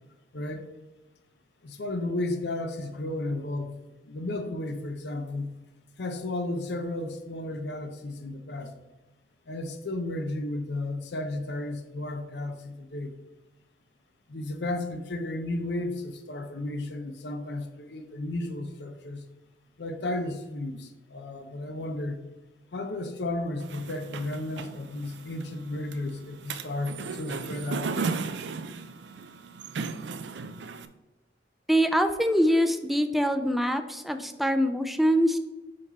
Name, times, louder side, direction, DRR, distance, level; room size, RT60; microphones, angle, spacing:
voice 1, 0.3-0.7 1.6-3.7 4.0-5.5 6.0-8.7 9.5-13.1 14.3-19.2 19.8-22.2 22.7-28.1, left 2 dB, 70° left, 7 dB, 0.6 m, -33 dB
sound 1, 23.6-30.9, right 4 dB, 85° right, 0.5 m, -36 dB
voice 2, 31.7-35.4, equal, ahead, 7 dB, 0.4 m, -24 dB
5.5 x 5.2 x 4.0 m, 1.1 s
head